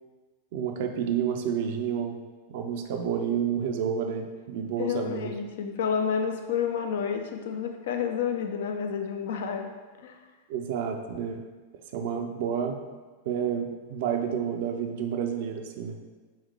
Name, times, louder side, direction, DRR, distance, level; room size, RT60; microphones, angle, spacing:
voice 1, 0.5-2.2 2.5-5.3 10.5-11.4 11.9-12.8 13.3-15.9, right 8 dB, 50° right, 5 dB, 0.4 m, -30 dB
voice 2, 4.8-9.7 10.0-10.2, left 7 dB, 55° left, 5 dB, 0.4 m, -30 dB
3.4 x 3.2 x 3.2 m, 1.3 s
figure-of-eight pair, 90°, 0 cm